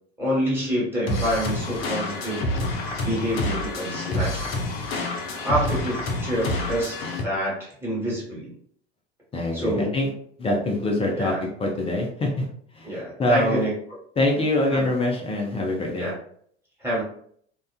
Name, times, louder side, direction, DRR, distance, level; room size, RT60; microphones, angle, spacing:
voice 1, 0.2-4.6 5.4-8.5 9.5-9.9 11.1-11.4 12.8-13.7 14.7-14.9 16.0-16.1 16.8-17.0, equal, 5° right, -6 dB, 1.4 m, -27 dB
sound 1, 1.1-7.2, left 2 dB, 60° left, 0.6 m, -28 dB
voice 2, 9.3-10.1 10.4-11.3 11.6-12.5 12.7-13.6 14.2-16.1, left 1 dB, 15° left, 0 dB, 0.5 m, -24 dB
2.4 x 2.2 x 2.3 m, 0.62 s
figure-of-eight pair, 75°, 34 cm